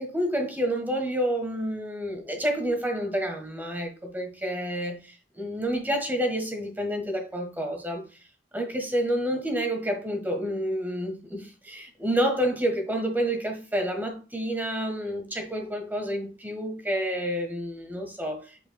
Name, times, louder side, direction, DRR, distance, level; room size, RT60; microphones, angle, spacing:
voice 1, 0.0-8.0 8.5-18.7, equal, 10° right, 1.5 m, -29 dB
8.3 x 5.0 x 2.3 m
head